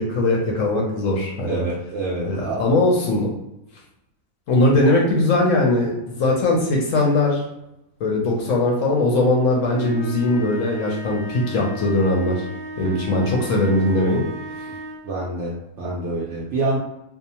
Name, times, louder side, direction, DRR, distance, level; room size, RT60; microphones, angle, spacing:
voice 1, 0.0-1.6 2.2-3.3 4.5-7.4 8.0-12.4 12.8-14.2, left 2 dB, 70° left, -2 dB, 0.8 m, -20 dB
voice 2, 1.4-2.7 15.0-16.8, right 2 dB, 70° right, -5 dB, 0.7 m, -27 dB
sound 1, 9.7-15.1, right 1 dB, 5° right, 0.7 m, -35 dB
2.6 x 2.0 x 2.8 m, 0.86 s
omnidirectional pair, 1.6 m